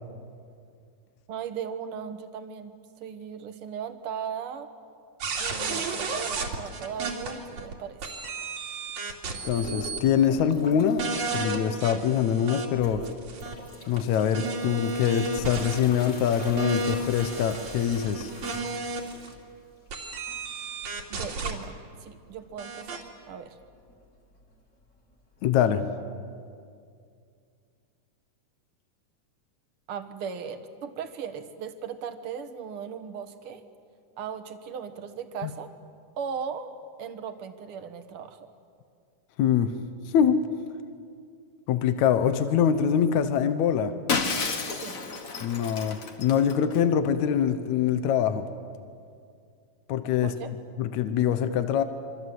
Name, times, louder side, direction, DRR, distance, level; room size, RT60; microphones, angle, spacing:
voice 1, 1.3-2.7 3.0-4.7 5.4-8.2 21.1-23.6 29.9-33.6 34.2-35.7 36.2-36.7 37.0-38.5 44.7-45.0 50.2-50.5, right 7 dB, 55° right, 8 dB, 2.0 m, -37 dB
sound 1, 5.2-7.7 8.0-10.1 10.4-10.5 11.0-12.7 13.1-19.3 19.9-21.5 22.6-23.0, right 3 dB, 70° right, 3.9 m, -33 dB
voice 2, 9.4-13.0 13.9-18.3 25.4-25.9 35.4-35.5 39.4-39.7 40.1-40.4 41.7-44.0 45.4-48.5 49.9-50.3 50.8-51.8, left 8 dB, 75° left, 9 dB, 2.2 m, -24 dB
sound 2, 9.4-11.4 11.8-12.3 12.7-25.4, left 2 dB, 25° left, 3.0 m, -45 dB
Shatter, 44.1-46.8, left 4 dB, 45° left, 1.1 m, -31 dB
27.0 x 24.0 x 7.8 m, 2.3 s
omnidirectional pair, 3.5 m